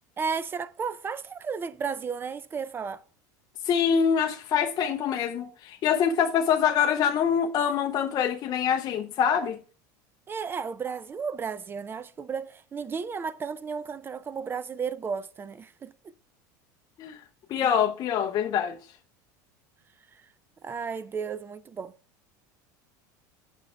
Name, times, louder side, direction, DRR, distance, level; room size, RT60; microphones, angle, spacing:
voice 1, 0.2-3.0 10.3-15.9 20.6-21.9, right 6 dB, 25° right, 0.4 m, -33 dB
voice 2, 3.6-9.6 17.0-17.2 17.5-18.8, left 8 dB, 40° left, 0.5 m, -25 dB
8.3 x 5.3 x 2.2 m
supercardioid pair, 110°, 10 cm